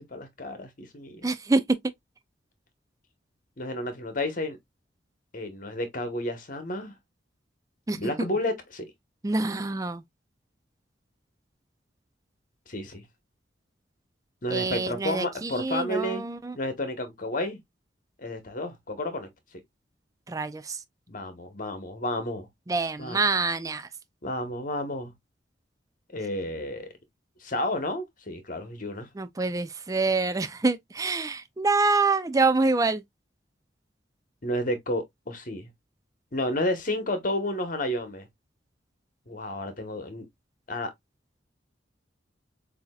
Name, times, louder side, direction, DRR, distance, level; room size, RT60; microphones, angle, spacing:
voice 1, 0.0-1.3 3.6-4.6 5.3-6.9 7.9-8.9 12.7-13.0 14.4-16.2 16.6-17.6 18.2-19.3 21.1-22.5 23.0-23.2 24.2-25.1 26.1-26.9 27.4-29.1 34.4-35.7 36.3-38.3 39.3-40.3 40.7-40.9, left 1 dB, 45° left, 1.1 m, -31 dB
voice 2, 1.2-1.8 7.9-8.0 9.2-10.0 14.5-16.5 20.3-20.8 22.7-23.9 29.2-33.0, right 3 dB, 20° right, 0.4 m, -26 dB
7.1 x 2.8 x 2.3 m
head